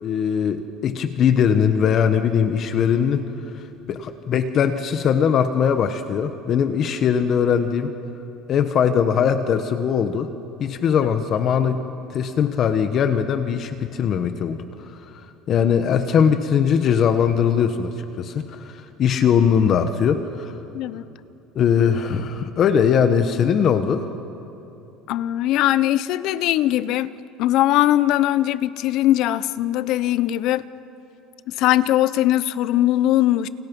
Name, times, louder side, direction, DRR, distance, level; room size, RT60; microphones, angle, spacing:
voice 1, 0.0-3.3 3.6-7.9 8.5-10.3 10.6-11.8 12.1-15.2 15.5-20.5 21.5-24.1, left 7 dB, 45° left, 9 dB, 1.2 m, -20 dB
voice 2, 20.7-21.0 25.1-27.1 27.4-30.6 31.5-33.5, left 14 dB, 60° left, 17 dB, 0.8 m, -20 dB
29.5 x 29.5 x 5.4 m, 3.0 s
cardioid pair, 130°, 0 cm